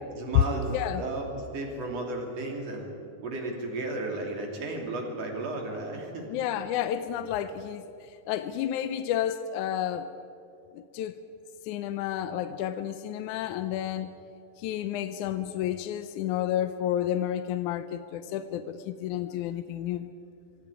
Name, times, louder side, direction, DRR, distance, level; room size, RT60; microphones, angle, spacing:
voice 1, 0.1-2.9 3.2-6.3, right 2 dB, 55° right, 0 dB, 4.2 m, -34 dB
voice 2, 0.7-1.0 6.3-7.8 8.3-10.1 10.7-11.1 11.7-14.1 14.6-20.1, left 11 dB, 85° left, 10 dB, 2.2 m, -30 dB
25.5 x 25.0 x 5.0 m, 2.6 s
omnidirectional pair, 3.4 m